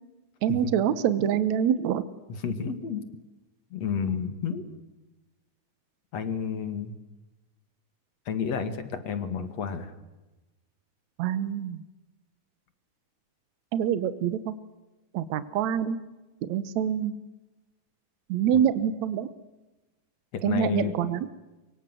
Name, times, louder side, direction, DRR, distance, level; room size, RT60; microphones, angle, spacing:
voice 1, 0.4-2.1 11.2-11.8 13.7-14.6 15.1-16.0 16.4-17.1 18.3-19.3 20.4-21.3, right 9 dB, 70° right, 13 dB, 2.3 m, -26 dB
voice 2, 2.3-3.1 3.7-4.6 6.1-7.0 8.3-9.9 20.3-20.9, left 7 dB, 55° left, 9 dB, 3.1 m, -31 dB
24.5 x 24.0 x 7.7 m, 1.1 s
omnidirectional pair, 3.6 m